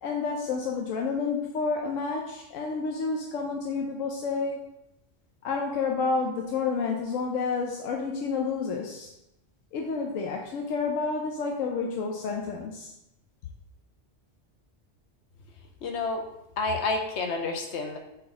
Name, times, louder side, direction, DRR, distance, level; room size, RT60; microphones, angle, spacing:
voice 1, 0.0-4.7 5.4-9.1 9.7-12.9, left 4 dB, 85° left, 1 dB, 1.0 m, -30 dB
voice 2, 15.8-16.2 16.6-18.0, left 3 dB, 65° left, 3 dB, 1.1 m, -29 dB
4.3 x 4.3 x 5.1 m, 0.87 s
omnidirectional pair, 1.3 m